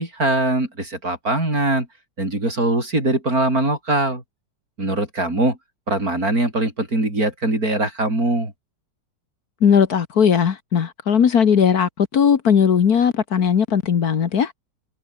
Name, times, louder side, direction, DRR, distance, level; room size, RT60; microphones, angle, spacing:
voice 1, 0.0-1.9 2.2-4.2 4.8-5.6 5.9-8.5, right 2 dB, 55° right, 7.7 m, -21 dB
voice 2, 9.6-14.5, left 7 dB, 60° left, 1.8 m, -18 dB
omnidirectional pair, 1.9 m